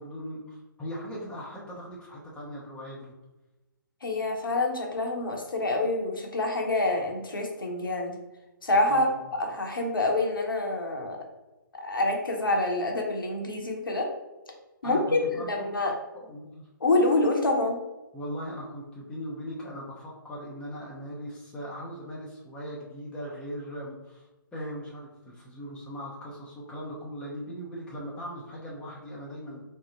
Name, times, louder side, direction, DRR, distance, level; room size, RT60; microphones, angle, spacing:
voice 1, 0.0-3.1 8.9-9.2 14.8-15.8 16.1-16.7 18.1-29.6, equal, 10° left, -6 dB, 0.7 m, -39 dB
voice 2, 4.0-8.2 8.6-9.1 9.3-11.2 11.8-14.1 14.8-15.9 16.8-17.8, left 2 dB, 75° left, 1 dB, 0.9 m, -26 dB
3.7 x 2.1 x 3.8 m, 1.0 s
figure-of-eight pair, 135°, 11 cm